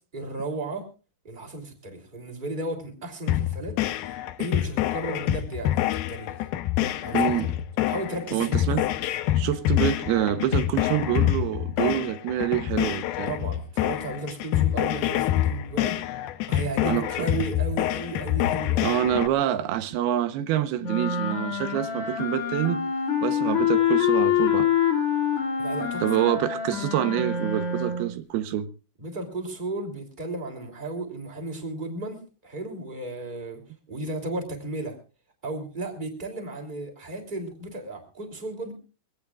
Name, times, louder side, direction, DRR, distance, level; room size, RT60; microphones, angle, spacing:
voice 1, 0.1-0.9 1.2-3.7 4.0-6.5 7.0-7.5 7.9-8.7 13.2-16.0 16.5-18.9 25.6-26.1 29.0-33.6 33.9-35.0 35.4-38.7, right 2 dB, 15° right, 2.8 m, -34 dB
sound 1, 3.3-19.3, left 13 dB, 80° left, 2.6 m, -26 dB
voice 2, 7.1-7.5 8.3-8.8 9.4-13.3 16.8-17.1 18.8-22.8 23.2-24.7 26.0-28.7, right 12 dB, 90° right, 2.9 m, -26 dB
sound 2, 20.8-28.2, left 8 dB, 40° left, 3.0 m, -25 dB
23.5 x 18.0 x 2.4 m
omnidirectional pair, 4.4 m